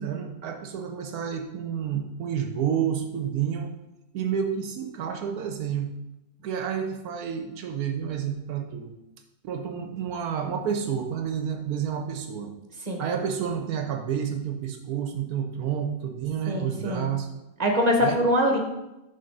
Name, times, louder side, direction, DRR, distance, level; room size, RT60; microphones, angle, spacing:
voice 1, 0.0-3.7 4.1-5.9 6.4-8.9 9.4-12.5 13.0-17.3 18.0-18.2, right 8 dB, 70° right, 4 dB, 1.0 m, -30 dB
voice 2, 16.5-17.1 17.6-18.6, equal, 35° right, 2 dB, 0.8 m, -23 dB
6.7 x 3.9 x 5.3 m, 0.96 s
omnidirectional pair, 1.8 m